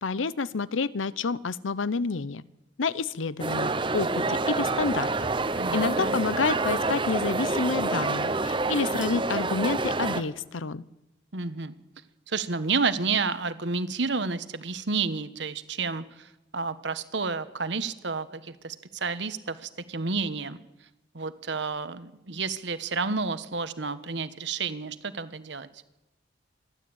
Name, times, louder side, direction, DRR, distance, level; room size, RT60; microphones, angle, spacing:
voice 1, 0.0-2.4 2.8-5.1 5.7-10.8, left 4 dB, 90° left, 19 dB, 0.7 m, -29 dB
sound 1, 3.4-10.2, right 3 dB, 25° right, 0.9 m, -27 dB
voice 2, 5.6-6.2 11.3-11.7 12.3-16.3 16.5-20.6 21.1-25.7, right 4 dB, 65° right, 12 dB, 1.2 m, -30 dB
27.5 x 12.0 x 8.8 m, 0.97 s
head